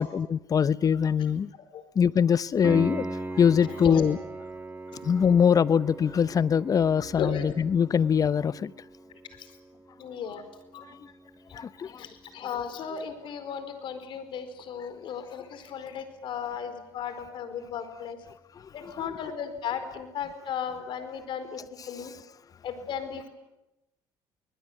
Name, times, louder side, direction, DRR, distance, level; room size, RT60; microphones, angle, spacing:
voice 1, 0.0-1.5 2.0-3.1 3.4-4.2 5.0-8.7 11.5-11.9 18.8-19.3 21.8-22.1, left 7 dB, 40° left, 19 dB, 0.8 m, -23 dB
voice 2, 1.5-1.8 3.6-4.1 4.9-5.0 7.1-7.4 9.3-9.5 10.0-10.4 10.7-10.8 11.5-18.2 18.7-21.6 21.9-22.1 22.6-23.3, left 7 dB, 65° left, 11 dB, 4.6 m, -35 dB
Piano, 2.6-13.3 16.6-16.7, right 2 dB, 20° right, 1.9 m, -40 dB
25.0 x 20.5 x 9.5 m, 0.96 s
supercardioid pair, 75°, 9 cm